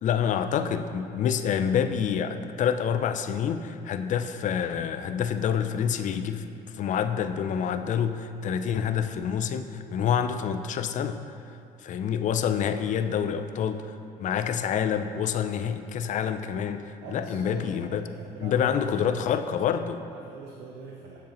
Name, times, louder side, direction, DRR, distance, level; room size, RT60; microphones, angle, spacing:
voice 1, 0.0-6.5 6.7-11.2 11.8-18.0 18.4-20.0, left 8 dB, 50° left, 9 dB, 0.4 m, -27 dB
voice 2, 17.0-19.3 19.9-21.2, right 5 dB, 85° right, -1 dB, 0.7 m, -43 dB
7.4 x 7.2 x 3.0 m, 2.7 s
cardioid pair, 110°, 17 cm